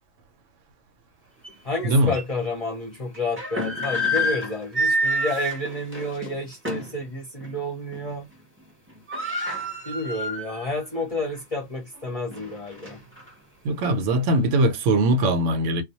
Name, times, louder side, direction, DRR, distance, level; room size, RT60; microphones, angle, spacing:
sound 1, 1.4-1.5 2.1-2.2 3.1-7.0 7.4-7.6 7.9-8.3 8.6-8.7 8.9-10.8 11.2-11.3 12.0-13.3, equal, 15° right, 0.4 m, -28 dB
voice 1, 1.6-8.3 9.8-13.0, left 2 dB, 40° left, 0.6 m, -30 dB
voice 2, 13.6-15.8, right 1 dB, 80° right, 0.9 m, -21 dB
2.2 x 2.0 x 2.8 m
omnidirectional pair, 1.3 m